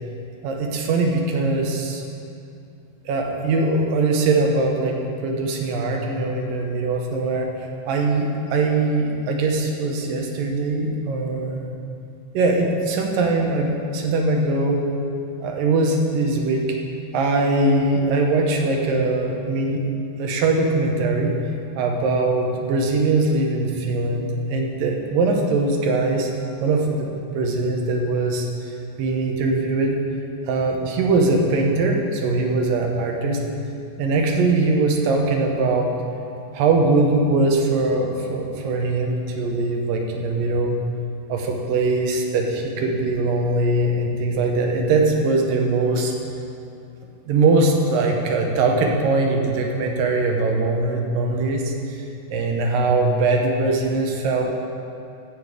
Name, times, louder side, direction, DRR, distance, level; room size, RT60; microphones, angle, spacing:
voice 1, 0.4-2.0 3.1-7.5 7.9-11.7 12.3-14.8 15.4-16.6 17.1-19.8 20.2-21.4 21.8-26.3 26.6-28.5 29.0-30.0 30.5-33.4 34.0-35.9 36.5-40.8 41.3-46.1 47.3-51.7 52.3-54.5, right 3 dB, 90° right, 1 dB, 2.7 m, -21 dB
11.5 x 5.0 x 8.1 m, 2.6 s
omnidirectional pair, 3.8 m